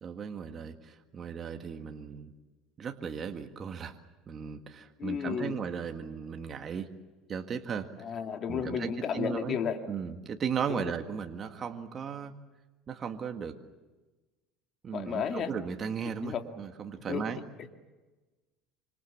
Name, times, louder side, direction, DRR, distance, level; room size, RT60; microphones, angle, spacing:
voice 1, 0.0-2.3 2.8-3.9 4.3-6.9 7.3-7.9 8.5-9.6 9.9-12.3 12.9-13.6 14.8-17.4, right 7 dB, 30° right, 5 dB, 1.8 m, -36 dB
voice 2, 5.0-5.6 8.0-9.8 10.7-10.8 14.9-15.5 16.2-16.4 17.1-17.2 17.6-17.7, left 7 dB, 40° left, 5 dB, 2.2 m, -32 dB
26.5 x 26.0 x 7.3 m, 1.2 s
cardioid pair, 140°, 0 cm